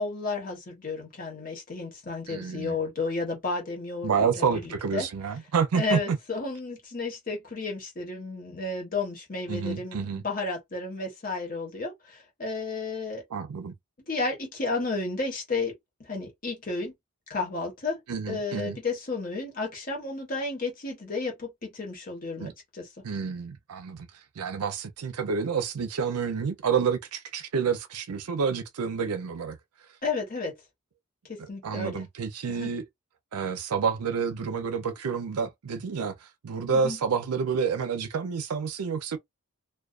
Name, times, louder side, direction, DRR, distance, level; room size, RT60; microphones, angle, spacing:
voice 1, 0.0-5.1 5.7-13.2 14.1-15.7 16.0-16.9 17.3-18.0 18.3-22.9 30.0-30.5 31.2-32.0 32.5-32.7 36.7-37.0, left 3 dB, 40° left, 1.0 m, -32 dB
voice 2, 2.3-2.8 4.0-6.2 9.5-10.2 13.3-13.7 18.1-18.8 22.4-22.5 23.0-24.1 24.4-29.6 31.6-32.8 33.3-39.2, right 6 dB, 90° right, 0.5 m, -29 dB
2.3 x 2.2 x 2.3 m
head